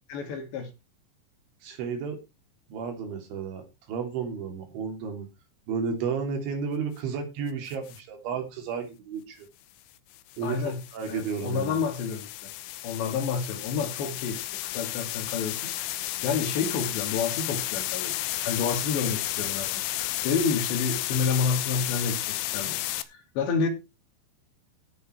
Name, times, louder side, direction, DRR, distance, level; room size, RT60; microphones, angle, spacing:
voice 1, 0.1-0.7 10.4-10.8 11.1-12.5 12.8-18.1 18.4-22.8 23.1-23.7, left 5 dB, 70° left, 4.6 m, -29 dB
voice 2, 1.6-2.2 2.7-5.3 5.7-9.5 10.4-10.6 10.9-11.8, right 6 dB, 80° right, 5.3 m, -32 dB
sound 1, 7.7-8.0 10.1-23.0, left 15 dB, 85° left, 3.2 m, -32 dB
17.0 x 6.7 x 4.5 m
omnidirectional pair, 5.4 m